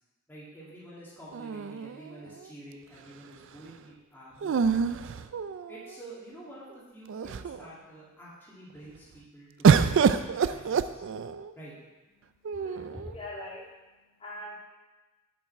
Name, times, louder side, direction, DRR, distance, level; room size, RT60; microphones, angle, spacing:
voice 1, 0.3-5.2 5.7-11.0 11.6-11.7, right 1 dB, 10° left, -8 dB, 2.0 m, -48 dB
sound 1, 1.3-2.4 4.4-5.9 6.7-6.8 7.1-7.7 9.6-11.5 12.4-13.1, right 6 dB, 65° right, 0.4 m, -26 dB
voice 2, 12.2-14.6, left 1 dB, 30° left, -5 dB, 2.3 m, -43 dB
7.8 x 7.4 x 4.3 m, 1.1 s
head